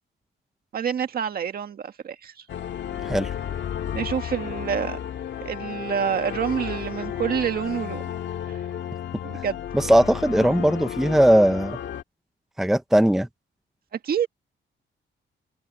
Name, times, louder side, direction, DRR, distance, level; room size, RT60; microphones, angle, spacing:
voice 1, 0.7-2.3 3.9-5.0 5.4-8.0 8.5-8.6 9.2-9.6 14.0-14.3, right 8 dB, 50° right, 1.8 m, -27 dB
sound 1, 2.5-12.0, left 10 dB, 70° left, 1.7 m, -33 dB
voice 2, 9.7-11.8 12.6-13.3, right 1 dB, ahead, 0.6 m, -19 dB
open air
wide cardioid pair, 180°, 20 cm